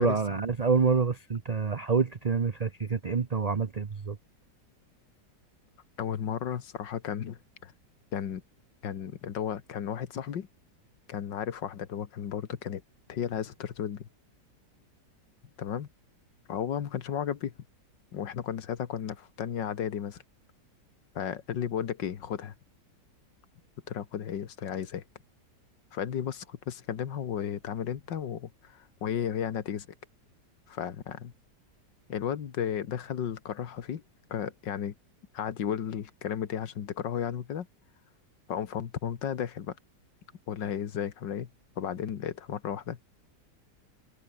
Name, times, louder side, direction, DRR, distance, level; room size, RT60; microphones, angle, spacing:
voice 1, 0.0-4.2, right 5 dB, 45° right, 0.5 m, -27 dB
voice 2, 6.0-7.7 8.1-8.4 8.8-10.5 11.1-12.8 13.1-14.1 15.6-15.9 16.5-17.5 18.1-20.2 21.2-22.5 23.9-25.0 25.9-29.9 30.7-31.3 32.1-34.0 34.3-34.9 35.3-37.7 38.5-39.7 40.5-41.5 41.8-43.0, left 8 dB, 90° left, 2.1 m, -34 dB
omnidirectional pair, 1.9 m